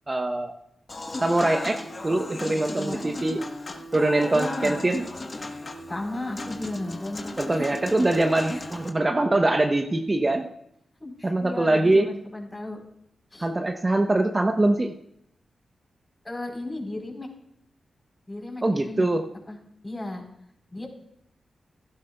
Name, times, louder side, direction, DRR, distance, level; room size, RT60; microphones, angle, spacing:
voice 1, 0.1-0.5 1.2-3.4 3.9-5.0 7.4-10.5 11.2-12.1 13.4-14.9 18.6-19.2, right 2 dB, 35° right, 5 dB, 0.9 m, -23 dB
Human voice / Acoustic guitar / Piano, 0.9-8.9, left 2 dB, 40° left, 1.3 m, -36 dB
voice 2, 2.8-3.2 4.3-4.8 5.9-7.4 11.0-12.8 13.3-13.5 13.9-14.0 16.2-17.3 18.3-19.1 19.5-19.6 19.8-20.2 20.7-20.9, left 2 dB, 25° left, 0 dB, 4.1 m, -34 dB
16.0 x 11.5 x 2.3 m, 0.74 s
supercardioid pair, 40°, 0 cm